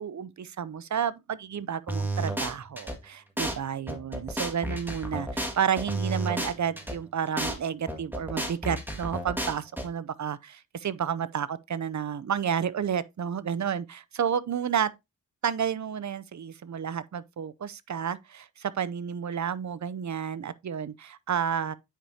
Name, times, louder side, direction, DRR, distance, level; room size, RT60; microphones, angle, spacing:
voice 1, 0.0-14.9 15.4-21.7, right 8 dB, 55° right, 0.6 m, -31 dB
sound 1, 1.9-2.9 3.4-3.5 3.9-6.9 7.4-7.5 7.9-9.8, right 1 dB, 5° right, 1.8 m, -31 dB
9.0 x 4.8 x 2.7 m
cardioid pair, 50°, 36 cm